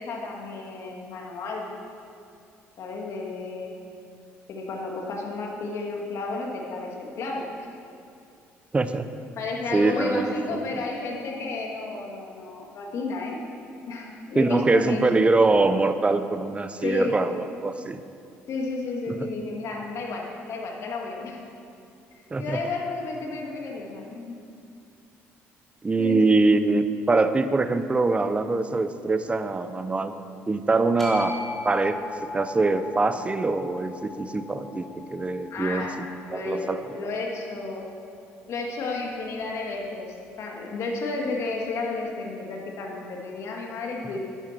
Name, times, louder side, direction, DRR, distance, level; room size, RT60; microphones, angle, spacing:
voice 1, 0.0-1.6 2.8-3.8 4.5-7.4 9.4-13.4 13.9-15.0 16.8-17.2 18.5-21.4 22.4-24.4 26.0-26.3 35.5-36.0 36.3-37.9 38.5-44.2, left 3 dB, 65° left, 0 dB, 2.3 m, -32 dB
voice 2, 8.7-9.1 9.7-10.6 14.3-18.0 19.1-19.2 22.3-22.6 25.8-30.1 30.5-31.3 31.6-32.0 32.3-36.1 36.3-36.8, right 3 dB, 20° right, 10 dB, 0.8 m, -23 dB
sound 1, 31.0-37.2, left 3 dB, 5° left, 3.3 m, -38 dB
11.0 x 10.0 x 6.1 m, 2.5 s
supercardioid pair, 85°, 5 cm